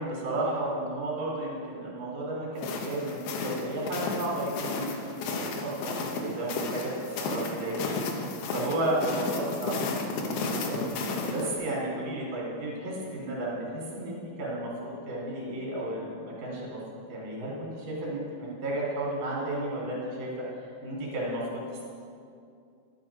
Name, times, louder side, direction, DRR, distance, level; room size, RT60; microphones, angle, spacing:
voice 1, 0.0-4.9 5.2-6.9 7.2-16.8 17.1-20.3 20.6-21.6, right 1 dB, 40° right, -4 dB, 4.2 m, -33 dB
sound 1, 2.6-11.5, left 3 dB, 80° left, 2.1 m, -33 dB
13.0 x 11.0 x 4.9 m, 2.4 s
omnidirectional pair, 6.0 m